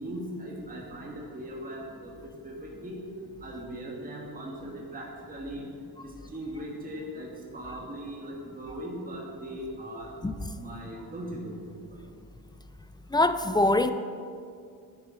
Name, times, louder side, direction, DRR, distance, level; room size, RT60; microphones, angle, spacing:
voice 1, 0.0-3.0 3.4-5.7 6.0-10.1 10.5-12.0, right 1 dB, 20° right, -3 dB, 1.7 m, -39 dB
voice 2, 13.1-13.9, left 2 dB, 10° left, 10 dB, 0.3 m, -23 dB
10.5 x 9.6 x 5.1 m, 2.3 s
cardioid pair, 130°, 41 cm